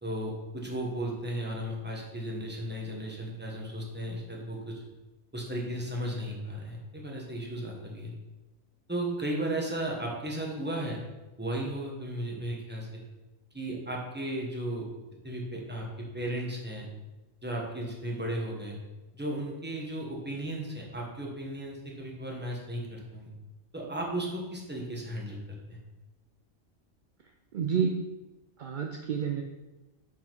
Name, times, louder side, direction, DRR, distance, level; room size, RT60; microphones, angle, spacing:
voice 1, 0.0-4.8 5.3-8.1 8.9-11.0 11.4-13.0 13.5-14.9 15.2-16.9 17.4-18.8 19.1-23.3 23.7-25.8, right 1 dB, 10° right, -2 dB, 1.0 m, -35 dB
voice 2, 27.5-27.9 28.6-29.4, right 7 dB, 60° right, 2 dB, 0.5 m, -29 dB
5.7 x 4.9 x 4.5 m, 1.1 s
omnidirectional pair, 1.3 m